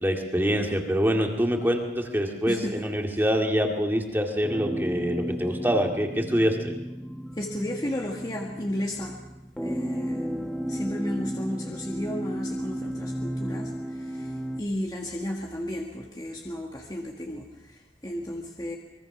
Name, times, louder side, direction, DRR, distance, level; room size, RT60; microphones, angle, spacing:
voice 1, 0.0-6.7, equal, 10° right, 2 dB, 2.1 m, -25 dB
voice 2, 2.5-2.8 3.1-3.2 7.3-9.2 9.6-18.8, left 1 dB, 25° left, 0 dB, 1.7 m, -34 dB
sound 1, 4.4-14.6, equal, 5° left, 1.4 m, -34 dB
25.0 x 23.0 x 6.1 m, 0.97 s
head